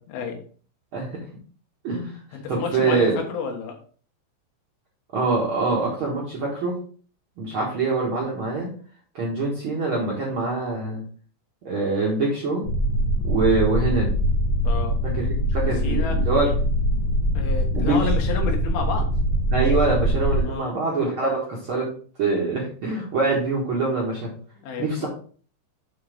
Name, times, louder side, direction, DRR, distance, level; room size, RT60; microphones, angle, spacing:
voice 1, 0.1-0.4 2.3-3.8 14.7-14.9 15.6-16.2 17.3-19.1 20.4-20.8 24.6-25.1, left 5 dB, 75° left, 2 dB, 3.7 m, -30 dB
voice 2, 1.8-2.2 2.5-3.1 5.1-6.8 7.4-8.7 9.1-11.0 11.6-12.6 13.2-14.1 15.2-16.5 17.7-18.1 19.5-21.9 22.2-24.3 24.8-25.1, right 3 dB, 70° right, -4 dB, 1.2 m, -24 dB
sound 1, 12.6-20.4, equal, 55° left, 2.2 m, -23 dB
8.5 x 3.9 x 5.1 m, 0.43 s
omnidirectional pair, 5.1 m